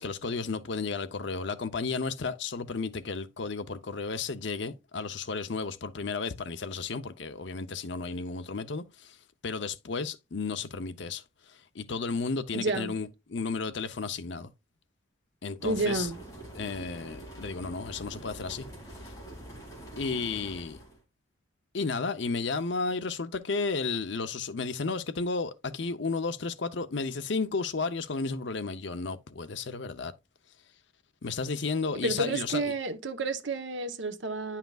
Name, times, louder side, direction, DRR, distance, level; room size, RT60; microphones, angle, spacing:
voice 1, 0.0-9.2 9.4-14.5 15.4-16.1 16.5-18.6 20.0-20.8 21.7-30.1 31.2-32.7, left 4 dB, 60° left, 0.7 m, -33 dB
voice 2, 12.5-12.9 15.6-16.2 32.0-34.6, right 2 dB, 65° right, 1.0 m, -30 dB
sound 1, 15.6-21.0, right 1 dB, 15° left, 2.7 m, -45 dB
10.0 x 5.7 x 2.4 m
head